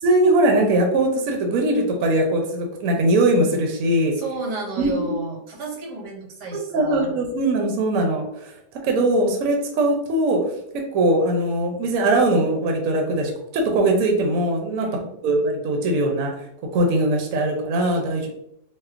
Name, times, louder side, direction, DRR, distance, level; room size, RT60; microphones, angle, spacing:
voice 1, 0.0-4.1 4.8-5.1 6.5-8.5 8.8-10.4 10.9-14.9 15.2-16.3 16.7-18.3, right 1 dB, 65° right, 2 dB, 0.9 m, -21 dB
voice 2, 4.1-7.1 14.8-15.2, right 3 dB, 85° right, 0 dB, 1.4 m, -32 dB
4.2 x 2.1 x 2.4 m, 0.76 s
omnidirectional pair, 1.7 m